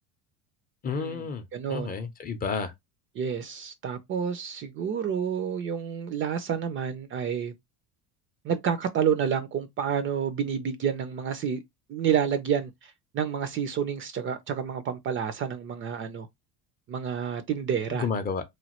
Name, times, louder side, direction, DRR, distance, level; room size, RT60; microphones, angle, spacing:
voice 1, 0.8-1.4 1.7-2.7 17.9-18.4, left 5 dB, 25° left, 0.5 m, -30 dB
voice 2, 1.5-2.0 3.1-7.5 8.4-11.6 11.9-16.3 16.9-18.1, right 8 dB, 35° right, 0.4 m, -29 dB
3.1 x 2.2 x 2.9 m
cardioid pair, 130°, 35 cm